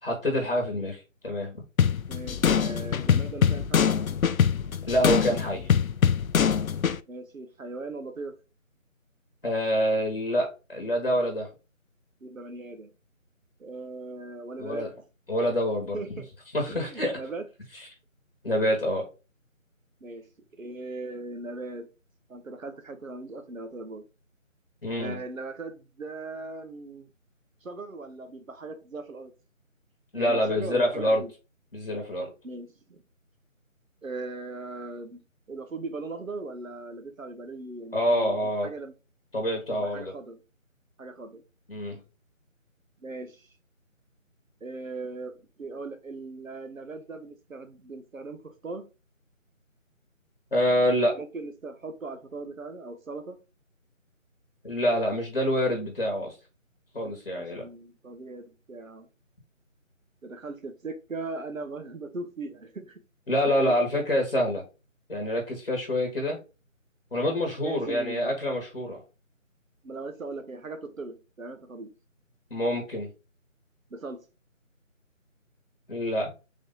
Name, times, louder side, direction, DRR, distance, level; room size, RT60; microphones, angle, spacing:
voice 1, 0.0-1.5 4.9-5.7 9.4-11.5 14.6-14.9 15.3-16.0 16.5-17.2 18.4-19.1 24.8-25.2 30.1-31.2 31.7-32.3 37.9-38.7 39.3-40.1 41.7-42.0 50.5-51.1 54.6-56.4 56.9-57.7 63.3-64.6 65.1-66.4 67.1-69.0 72.5-73.1 75.9-76.3, equal, 45° left, 1.2 m, -26 dB
sound 1, 1.8-7.0, left 7 dB, 85° left, 0.5 m, -23 dB
voice 2, 2.1-3.9 7.1-8.3 12.2-12.9 13.6-14.9 15.9-16.3 16.7-17.4 20.0-20.3 20.6-21.9 22.3-24.0 25.0-27.1 27.6-29.3 30.1-31.3 32.4-33.0 34.0-38.9 39.7-40.4 41.0-41.4 43.0-43.5 44.6-48.8 51.0-53.4 57.4-59.1 60.2-63.0 63.4-63.8 67.6-68.3 69.8-71.9 73.9-74.2, right 3 dB, 75° right, 1.0 m, -39 dB
3.8 x 3.2 x 3.7 m
figure-of-eight pair, 165°, 40 cm